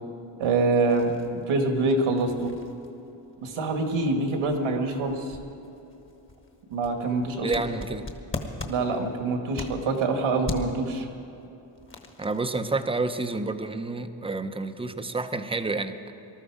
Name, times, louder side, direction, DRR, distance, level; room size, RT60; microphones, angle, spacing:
voice 1, 0.4-1.1 1.5-2.5 3.4-5.4 6.7-7.5 8.6-11.1, right 3 dB, 80° right, 4 dB, 2.1 m, -25 dB
sound 1, 0.9-10.1 10.4-10.9 11.4-12.6, left 3 dB, 25° left, 1.3 m, -40 dB
voice 2, 7.4-8.1 12.2-16.1, right 3 dB, 10° right, 9 dB, 0.6 m, -29 dB
19.5 x 13.0 x 4.9 m, 3.0 s
cardioid pair, 125°, 48 cm